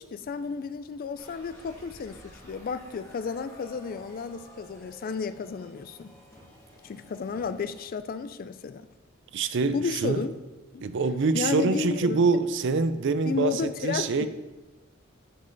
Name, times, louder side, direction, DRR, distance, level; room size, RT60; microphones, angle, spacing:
voice 1, 0.0-6.1 6.8-8.9 9.7-10.3 10.7-10.8 11.3-12.2 13.2-14.3, left 5 dB, 45° left, 12 dB, 0.3 m, -32 dB
sound 1, 1.2-7.9, equal, 15° left, 1.8 m, -51 dB
voice 2, 9.3-10.2 10.8-14.3, right 4 dB, 60° right, 12 dB, 0.5 m, -25 dB
10.5 x 5.4 x 3.9 m, 1.2 s
head